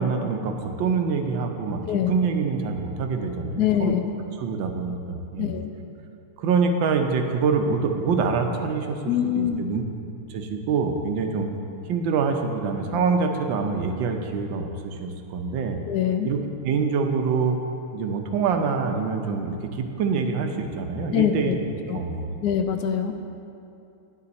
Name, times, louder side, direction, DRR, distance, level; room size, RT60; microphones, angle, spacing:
voice 1, 0.0-1.8 2.1-3.9 4.4-5.6 6.4-9.0 9.2-9.8 10.3-11.5 11.9-15.8 16.2-17.6 17.9-21.7 21.9-22.4, right 5 dB, 70° right, 4 dB, 1.4 m, -25 dB
voice 2, 3.6-4.0 5.4-5.7 9.1-9.6 15.9-16.3 21.1-21.6 21.9-22.0 22.4-23.1, left 9 dB, 80° left, 6 dB, 0.8 m, -24 dB
9.6 x 9.5 x 4.1 m, 2.6 s
omnidirectional pair, 2.4 m